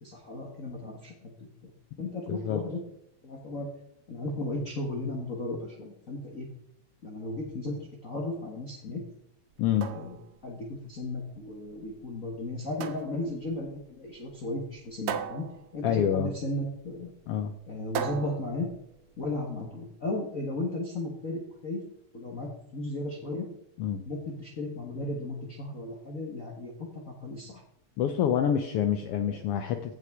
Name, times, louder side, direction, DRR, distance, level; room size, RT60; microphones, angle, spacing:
voice 1, 0.0-1.7 2.0-2.8 3.2-3.7 4.1-6.5 7.0-9.0 9.8-10.1 10.4-15.4 15.7-17.1 17.7-18.7 19.2-21.8 22.1-23.5 24.0-26.9 27.2-27.6 29.3-29.4, left 2 dB, 45° left, -2 dB, 1.1 m, -35 dB
voice 2, 2.3-2.6 9.6-9.9 15.8-16.3 17.3-17.5 23.8-24.0 28.0-29.9, left 9 dB, 85° left, 8 dB, 1.3 m, -27 dB
sound 1, 9.5-19.5, right 8 dB, 70° right, 1.4 m, -40 dB
15.5 x 5.6 x 3.6 m, 0.78 s
omnidirectional pair, 3.3 m